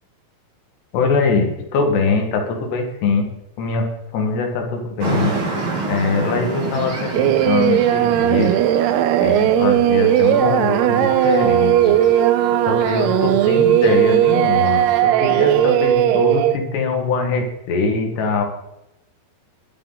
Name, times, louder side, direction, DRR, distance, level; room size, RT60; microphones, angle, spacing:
voice 1, 0.9-3.3 3.6-3.9 4.1-5.3 5.9-8.6 9.2-12.0 12.7-18.4, left 4 dB, 75° left, 3 dB, 4.3 m, -22 dB
sound 1, 5.0-15.0, right 3 dB, 30° right, 3.7 m, -30 dB
Singing, 7.1-16.6, right 12 dB, 80° right, 2.5 m, -17 dB
Wind instrument woodwind instrument, 10.3-16.1, right 7 dB, 65° right, 3.5 m, -29 dB
21.0 x 8.9 x 4.2 m, 0.89 s
omnidirectional pair, 5.0 m